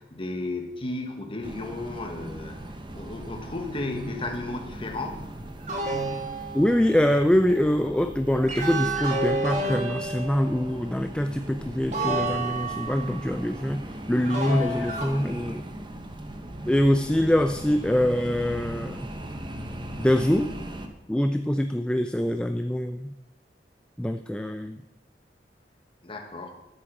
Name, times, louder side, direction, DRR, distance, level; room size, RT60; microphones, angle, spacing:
voice 1, 0.0-2.6 2.9-5.3 26.0-26.5, left 2 dB, 30° left, 3 dB, 1.2 m, -34 dB
sound 1, 1.4-20.9, right 1 dB, 25° right, 0.9 m, -39 dB
sound 2, 5.7-7.1 8.5-10.8 11.9-13.3 14.2-15.1, right 2 dB, 45° right, 1.9 m, -30 dB
voice 2, 6.5-13.8 14.1-15.6 16.7-19.1 20.0-20.5 21.1-23.1 24.0-24.8, equal, 5° left, 7 dB, 0.3 m, -24 dB
9.6 x 7.9 x 6.1 m, 0.98 s
head